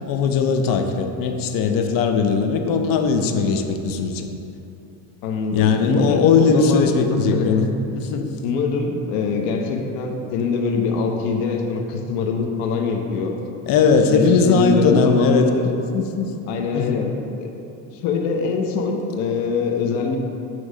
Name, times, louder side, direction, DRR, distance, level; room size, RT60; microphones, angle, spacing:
voice 1, 0.1-4.3 5.5-7.6 7.9-8.3 13.7-15.5 15.9-16.4 16.7-17.0, left 5 dB, 55° left, 5 dB, 0.7 m, -19 dB
voice 2, 5.2-7.8 8.4-13.3 14.1-15.7 16.5-17.5 18.0-20.2, left 4 dB, 80° left, 3 dB, 0.9 m, -23 dB
8.4 x 3.1 x 4.9 m, 2.8 s
cardioid pair, 120°, 41 cm